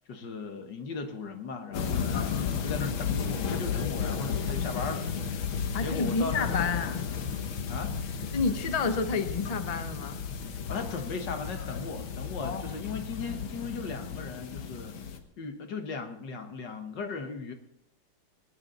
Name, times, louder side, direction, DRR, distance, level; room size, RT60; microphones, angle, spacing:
voice 1, 0.1-2.4 2.6-5.1 5.8-6.8 7.7-8.0 10.7-15.1 15.4-17.5, left 4 dB, 60° left, 6 dB, 2.0 m, -37 dB
sound 1, 1.7-15.2, left 6 dB, 85° left, 2.0 m, -33 dB
voice 2, 5.7-7.0 8.3-10.2 12.4-12.7, left 4 dB, 40° left, 8 dB, 0.5 m, -30 dB
19.5 x 10.0 x 4.0 m, 0.80 s
omnidirectional pair, 2.2 m